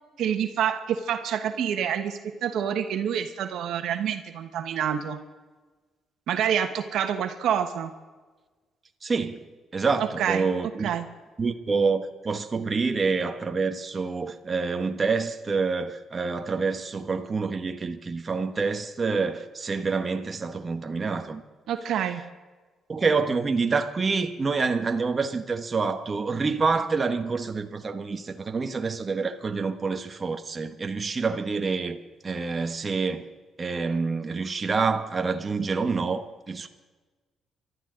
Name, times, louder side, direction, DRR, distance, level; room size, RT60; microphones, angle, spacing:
voice 1, 0.2-5.2 6.3-7.9 10.2-10.5 10.8-11.1 21.7-22.2, right 9 dB, 80° right, 1.3 m, -27 dB
voice 2, 9.0-9.4 9.7-10.9 11.4-21.4 22.9-32.0 32.2-33.3 33.6-36.7, right 4 dB, 35° right, 1.2 m, -27 dB
26.0 x 12.5 x 3.9 m
cardioid pair, 90°, 0 cm